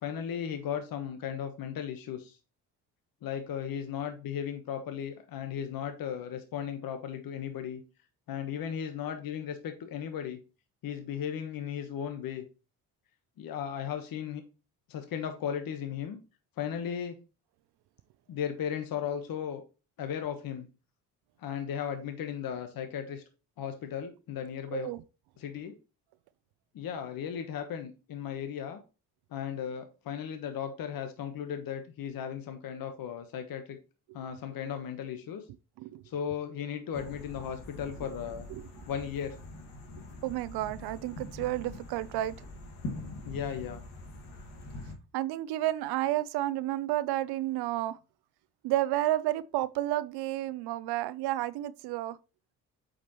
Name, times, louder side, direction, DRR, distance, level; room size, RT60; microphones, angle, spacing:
voice 1, 0.0-2.4 3.2-7.8 8.3-10.4 10.8-12.4 13.4-14.4 14.9-16.2 16.6-17.2 18.3-19.6 20.0-20.7 21.4-23.2 23.6-24.9 25.4-25.7 26.7-28.8 29.3-33.8 34.1-35.4 36.0-38.5 38.9-39.4 43.2-43.8, left 8 dB, 60° left, 1.2 m, -36 dB
sound 1, 36.9-44.9, left 2 dB, 85° left, 2.0 m, -44 dB
voice 2, 40.2-42.4 45.1-48.0 48.6-52.2, right 15 dB, 80° right, 0.6 m, -31 dB
8.0 x 5.2 x 3.0 m
supercardioid pair, 75°, 39 cm